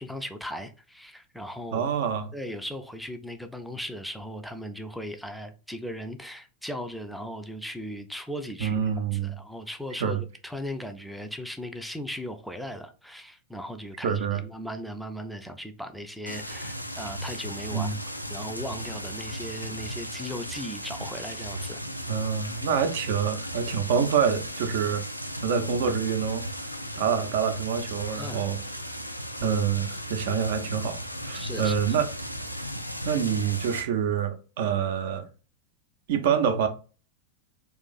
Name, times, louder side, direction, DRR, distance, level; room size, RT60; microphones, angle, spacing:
voice 1, 0.0-1.9 2.3-17.9 18.3-21.8 28.2-28.5 31.3-31.8, equal, ahead, 0.4 m, -37 dB
voice 2, 1.7-2.3 8.6-9.3 10.0-10.2 14.0-14.4 17.7-18.0 22.1-25.0 25.4-26.4 27.0-28.6 29.4-31.0 31.2-32.1 33.0-35.3 36.1-36.7, right 7 dB, 55° right, 0.5 m, -26 dB
sound 1, 16.3-33.8, equal, 90° left, 0.3 m, -36 dB
2.5 x 2.4 x 3.9 m
figure-of-eight pair, 90°, 0 cm